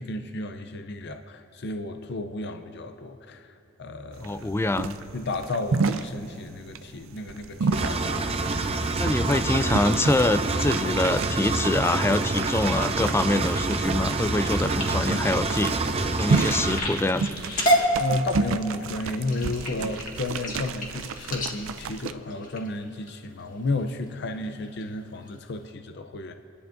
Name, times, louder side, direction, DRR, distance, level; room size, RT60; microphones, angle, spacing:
voice 1, 0.0-4.5 5.1-8.2 18.0-26.3, left 2 dB, 55° left, 7 dB, 0.6 m, -32 dB
voice 2, 4.2-5.0 9.0-15.8 16.2-17.3, left 2 dB, 10° left, 12 dB, 0.3 m, -25 dB
sound 1, 4.2-22.1, right 4 dB, 80° right, 0.4 m, -32 dB
Engine, 7.7-16.8, right 3 dB, 30° right, 0.6 m, -27 dB
sound 2, 14.8-23.1 23.7-24.0 24.4-24.8 25.3-25.4 25.7-25.8, equal, 40° left, 1.8 m, -30 dB
30.0 x 11.5 x 2.6 m, 2.5 s
head